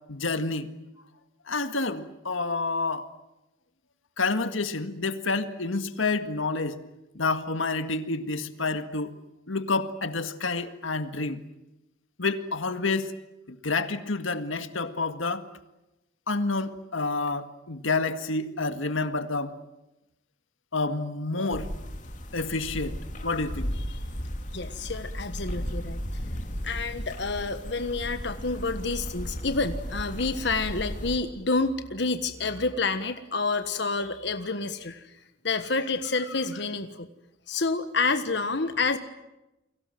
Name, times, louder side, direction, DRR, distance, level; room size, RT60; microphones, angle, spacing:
voice 1, 0.1-0.7 1.5-3.1 4.2-6.8 7.2-9.1 9.5-11.4 12.2-13.1 13.5-15.5 16.3-19.5 20.7-21.7 22.3-23.7, left 3 dB, 90° left, 9 dB, 1.9 m, -29 dB
sound 1, 21.5-31.2, equal, 40° left, 2.8 m, -35 dB
voice 2, 24.5-26.0 26.6-35.2 35.4-37.1 37.5-39.0, left 3 dB, 60° left, 8 dB, 1.4 m, -28 dB
30.0 x 23.0 x 7.8 m, 0.95 s
head